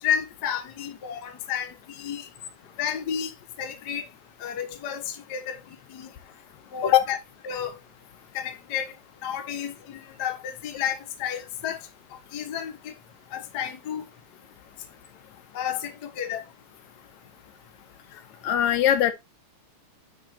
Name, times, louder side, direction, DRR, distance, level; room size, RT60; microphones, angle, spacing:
voice 1, 0.0-2.3 2.8-4.1 4.4-6.1 6.7-7.2 7.4-7.8 8.3-8.9 9.2-11.8 12.3-12.9 13.3-14.0 15.5-16.4, left 9 dB, 55° left, 1.2 m, -31 dB
voice 2, 18.4-19.1, left 11 dB, 75° left, 2.0 m, -20 dB
10.5 x 3.6 x 2.8 m
omnidirectional pair, 3.5 m